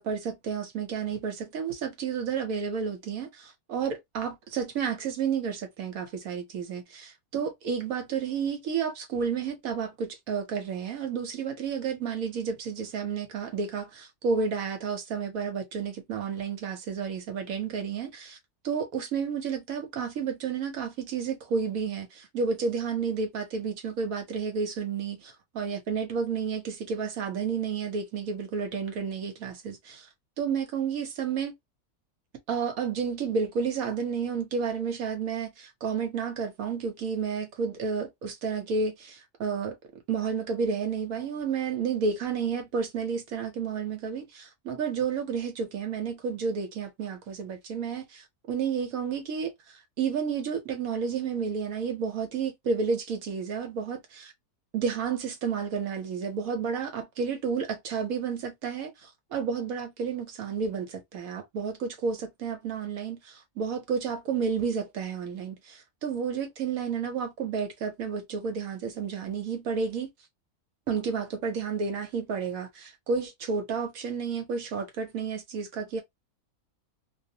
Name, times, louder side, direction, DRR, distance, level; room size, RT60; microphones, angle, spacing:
voice 1, 0.0-18.4 18.6-30.1 30.4-31.5 32.5-39.8 40.1-49.5 50.0-54.3 54.7-58.9 59.3-70.1 70.9-76.0, right 6 dB, 75° right, 1.1 m, -31 dB
2.7 x 2.0 x 2.6 m
omnidirectional pair, 1.5 m